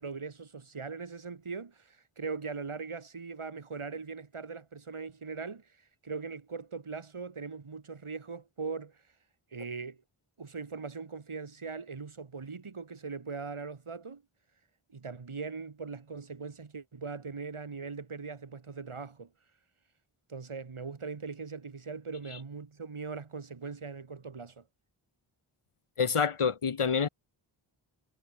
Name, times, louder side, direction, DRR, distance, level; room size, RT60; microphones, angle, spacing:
voice 1, 0.0-5.7 6.0-9.0 9.5-10.0 10.4-14.2 14.9-19.3 20.3-24.6, right 4 dB, 75° right, 6.8 m, -40 dB
voice 2, 26.0-27.1, left 6 dB, 90° left, 2.8 m, -27 dB
wide cardioid pair, 75°, 50 cm